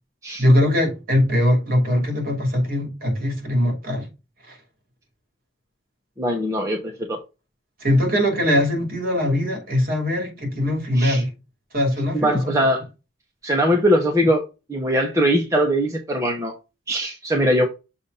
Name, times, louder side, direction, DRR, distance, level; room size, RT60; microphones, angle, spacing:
voice 1, 0.4-4.1 4.5-4.6 7.8-11.3 11.7-12.6, left 1 dB, 45° right, 2.8 m, -21 dB
voice 2, 6.2-7.2 11.0-11.2 12.1-12.8 13.4-14.4 14.7-16.5 16.9-17.7, equal, 15° right, 0.8 m, -21 dB
6.8 x 2.7 x 5.4 m
head